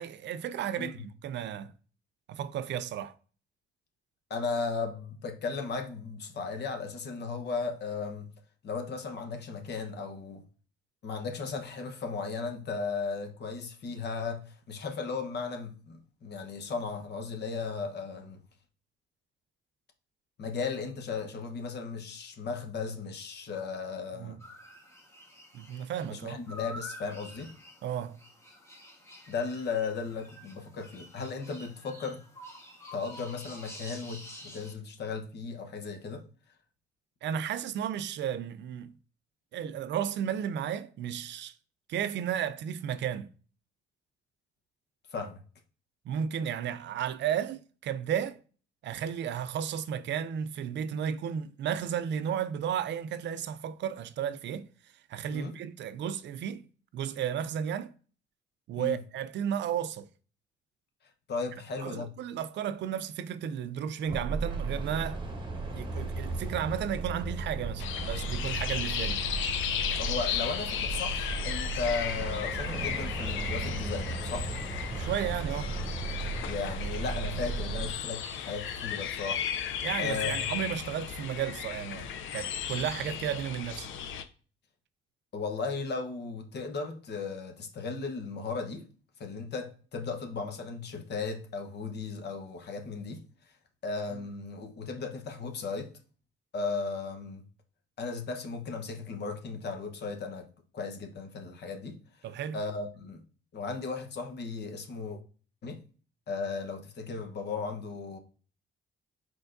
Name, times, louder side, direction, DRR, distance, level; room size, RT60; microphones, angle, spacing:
voice 1, 0.0-1.7 2.3-3.1 24.2-24.4 25.5-26.4 27.8-28.2 37.2-38.9 39.5-41.5 41.9-43.3 46.1-48.4 48.8-54.7 55.1-56.6 56.9-57.9 58.7-60.1 61.8-65.2 65.7-69.2 74.9-75.7 79.8-83.9 102.2-102.6, right 9 dB, 65° right, 0.4 m, -33 dB
voice 2, 4.3-8.3 8.6-10.4 11.0-18.4 20.4-24.4 26.1-27.5 29.3-32.2 32.9-36.3 45.1-45.4 55.3-55.6 58.8-59.0 61.3-62.1 70.0-74.5 76.4-80.3 85.3-88.9 89.2-93.2 93.8-95.9 96.5-97.4 98.0-100.5 100.7-102.0 102.5-103.2 103.5-105.2 105.6-105.8 106.3-108.2, left 4 dB, 60° left, 1.0 m, -36 dB
sound 1, 24.4-34.7, left 1 dB, 15° left, 1.3 m, -49 dB
sound 2, 64.1-77.9, right 3 dB, 25° right, 1.0 m, -35 dB
sound 3, 67.8-84.2, left 9 dB, 80° left, 0.5 m, -35 dB
4.4 x 4.4 x 2.6 m
cardioid pair, 90°, 20 cm